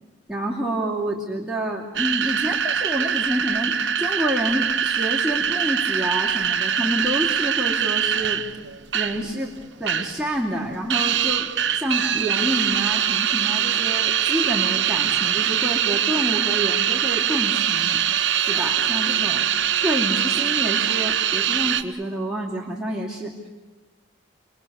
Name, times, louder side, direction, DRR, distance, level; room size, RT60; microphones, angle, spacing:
voice 1, 0.3-8.4 8.9-9.5 9.8-11.4 11.7-18.0 18.5-19.4 19.7-23.5, right 1 dB, 5° right, -5 dB, 2.7 m, -28 dB
sound 1, 2.0-9.3 9.6-10.2 10.5-21.8, right 9 dB, 65° right, 1.1 m, -23 dB
29.5 x 22.0 x 7.0 m, 1.3 s
head